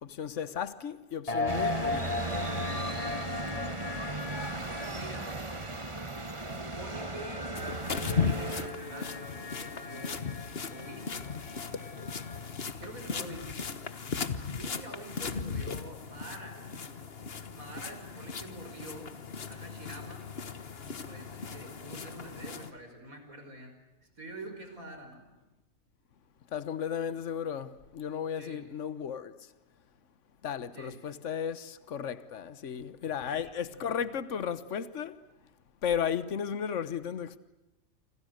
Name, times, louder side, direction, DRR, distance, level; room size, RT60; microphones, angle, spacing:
voice 1, 0.0-2.2 26.5-29.3 30.4-35.2 35.8-37.4, left 8 dB, 60° left, 1.5 m, -34 dB
sound 1, 1.3-12.7, left 3 dB, 25° left, 1.3 m, -38 dB
sound 2, 1.5-8.7, right 2 dB, 25° right, 1.4 m, -37 dB
voice 2, 4.8-5.4 6.4-7.5 8.0-10.3 10.7-11.3 12.8-13.5 14.6-17.1 17.5-19.1 19.5-20.2 20.8-23.8 24.0-25.3 28.3-28.7 30.7-31.0 33.0-34.0, right 2 dB, 85° right, 5.9 m, -47 dB
sound 3, 7.6-22.7, left 5 dB, 45° left, 1.5 m, -37 dB
29.0 x 26.5 x 6.6 m
omnidirectional pair, 1.4 m